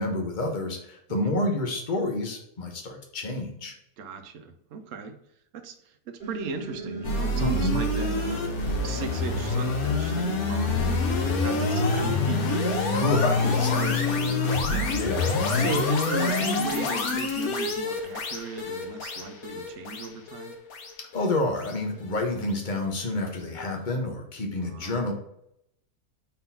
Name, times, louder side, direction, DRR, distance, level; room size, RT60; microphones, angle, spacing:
voice 1, 0.0-3.7 7.4-7.8 11.6-12.1 12.9-14.1 14.9-15.7 21.0-25.1, left 2 dB, 35° left, 2 dB, 1.2 m, -29 dB
voice 2, 4.0-5.2 5.5-8.4 8.8-12.4 12.8-13.1 13.4-14.9 15.5-20.6 24.6-25.1, right 5 dB, 60° right, 6 dB, 1.1 m, -37 dB
sound 1, 6.2-14.4, right 2 dB, 30° right, 2.2 m, -37 dB
sound 2, 7.0-22.2, left 3 dB, 65° left, 1.5 m, -27 dB
4.4 x 4.0 x 5.5 m, 0.75 s
omnidirectional pair, 1.7 m